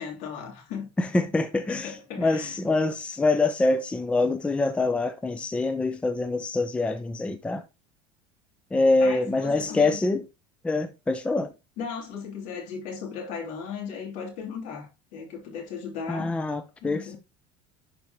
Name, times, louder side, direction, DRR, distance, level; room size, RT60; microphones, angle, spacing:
voice 1, 0.0-0.9 1.7-2.6 9.0-10.0 11.8-16.3 16.8-17.2, left 6 dB, 60° left, 2.8 m, -36 dB
voice 2, 1.0-7.6 8.7-10.2 10.6-11.5 16.1-17.2, left 2 dB, 10° left, 0.5 m, -25 dB
11.0 x 4.7 x 2.8 m
cardioid pair, 150°, 14 cm